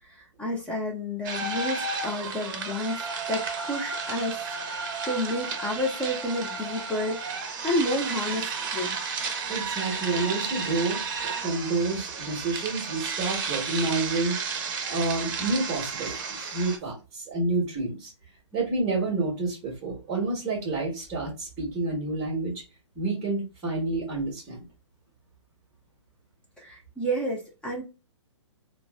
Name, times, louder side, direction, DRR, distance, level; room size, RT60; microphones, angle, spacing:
voice 1, 0.4-3.0 3.3-3.4 3.7-9.0 26.6-27.8, left 1 dB, 5° left, -2 dB, 0.4 m, -30 dB
sound 1, 1.2-16.8, right 5 dB, 45° right, 0.7 m, -32 dB
voice 2, 9.5-11.0 11.4-14.4 14.9-18.1 18.5-22.6 23.0-24.7, right 3 dB, 15° right, -5 dB, 1.1 m, -29 dB
3.9 x 2.0 x 2.2 m, 0.29 s
figure-of-eight pair, 130°, 16 cm